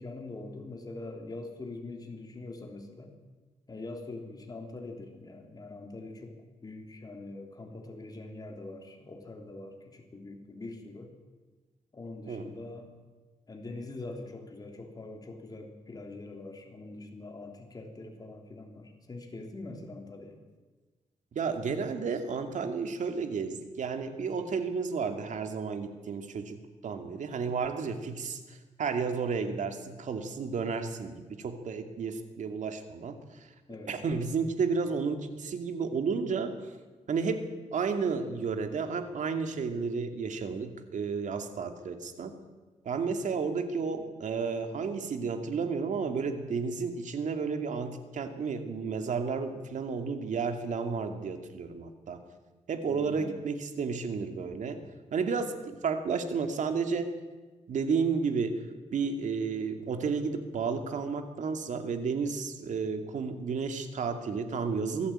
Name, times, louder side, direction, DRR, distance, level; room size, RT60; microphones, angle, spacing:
voice 1, 0.0-3.1 3.7-6.3 6.6-11.1 11.9-12.9 13.5-20.4 33.7-33.9 52.9-53.4, left 2 dB, 30° left, 3 dB, 3.3 m, -43 dB
voice 2, 21.3-26.6 26.8-33.5 33.9-36.5 37.1-42.4 42.8-52.2 52.7-54.8 55.1-57.1 57.7-58.6 58.9-65.1, right 5 dB, 75° right, 7 dB, 2.5 m, -32 dB
23.5 x 14.0 x 8.9 m, 1.3 s
wide cardioid pair, 125°, 13 cm